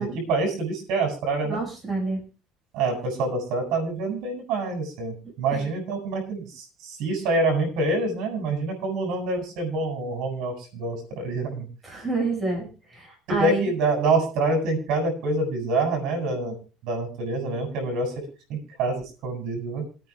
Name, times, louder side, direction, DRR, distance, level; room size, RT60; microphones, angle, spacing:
voice 1, 0.0-1.6 2.7-11.7 13.4-16.6 16.8-18.1 18.5-19.8, right 2 dB, 65° right, 3 dB, 7.9 m, -26 dB
voice 2, 1.4-2.2 5.5-5.7 11.8-13.7, right 3 dB, 20° right, 0 dB, 6.1 m, -28 dB
28.0 x 9.7 x 2.5 m, 0.33 s
cardioid pair, 150°, 0 cm